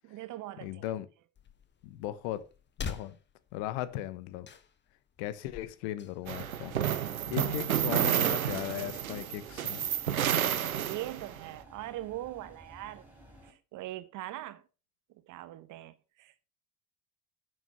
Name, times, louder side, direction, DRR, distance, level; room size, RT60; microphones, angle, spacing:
voice 1, 0.0-0.9 7.5-7.7 10.4-13.1 13.4-14.6 15.3-16.5, right 15 dB, 45° right, 1.1 m, -42 dB
voice 2, 0.6-1.1 1.8-2.5 2.8-3.2 3.5-4.5 5.2-6.7 7.3-9.9, left 14 dB, 55° left, 1.1 m, -37 dB
sound 1, 1.3-8.8, left 6 dB, 25° left, 1.3 m, -47 dB
sound 2, 6.2-13.5, right 1 dB, 5° right, 4.0 m, -54 dB
sound 3, 6.3-11.4, right 10 dB, 85° right, 0.7 m, -30 dB
10.5 x 6.5 x 5.5 m
figure-of-eight pair, 60°, 41 cm